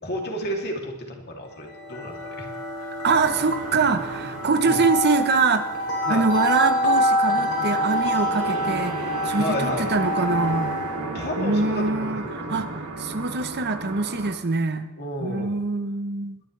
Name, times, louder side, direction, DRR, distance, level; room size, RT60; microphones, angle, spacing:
voice 1, 0.0-2.5 2.8-3.1 4.6-4.8 6.1-6.3 9.4-9.9 11.0-12.6 15.0-15.6, equal, 50° left, 1 dB, 2.8 m, -32 dB
sound 1, 1.6-11.1, left 1 dB, 75° left, 3.6 m, -26 dB
voice 2, 3.0-5.7 6.1-10.8 11.4-12.7 13.0-14.9 15.2-16.4, right 4 dB, 50° right, 9 dB, 0.9 m, -24 dB
sound 2, 3.0-14.3, right 2 dB, 75° right, 2.5 m, -34 dB
21.5 x 11.5 x 3.3 m, 1.0 s
head